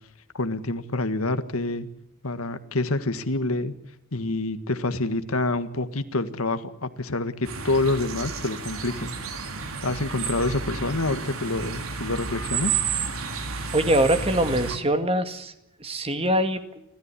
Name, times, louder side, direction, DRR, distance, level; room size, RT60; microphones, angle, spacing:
voice 1, 0.3-1.9 2.2-3.7 4.1-9.2 9.8-12.7, left 2 dB, 85° left, 10 dB, 1.8 m, -27 dB
sound 1, 7.4-14.8, right 5 dB, 80° right, 3.2 m, -31 dB
voice 2, 13.7-15.5 15.8-16.6, right 1 dB, 25° right, 9 dB, 2.0 m, -23 dB
29.5 x 13.5 x 9.8 m, 0.82 s
head